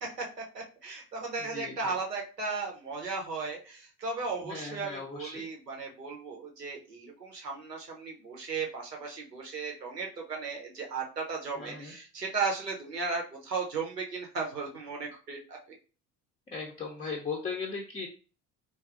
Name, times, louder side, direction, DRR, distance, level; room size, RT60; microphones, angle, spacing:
voice 1, 0.2-15.6, right 4 dB, 90° right, 0 dB, 0.8 m, -36 dB
voice 2, 1.4-2.0 4.4-5.5 11.6-11.9 16.5-18.1, left 4 dB, 15° left, 0 dB, 0.5 m, -38 dB
3.5 x 2.6 x 2.4 m, 0.36 s
figure-of-eight pair, 60°, 47 cm